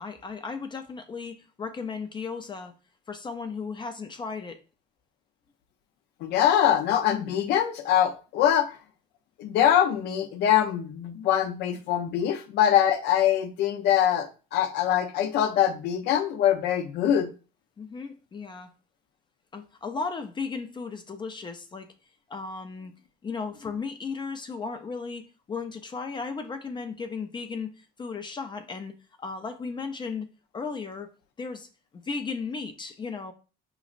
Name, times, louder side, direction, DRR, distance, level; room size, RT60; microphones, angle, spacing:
voice 1, 0.0-2.7 3.1-4.6 17.8-18.7 19.5-21.9 22.3-22.9 23.2-28.9 29.2-30.3 30.5-31.1 31.4-33.3, left 4 dB, 30° left, 0.4 m, -35 dB
voice 2, 6.2-8.7 9.4-17.3, left 10 dB, 85° left, 0.6 m, -23 dB
5.0 x 3.0 x 2.4 m
cardioid pair, 110°, 17 cm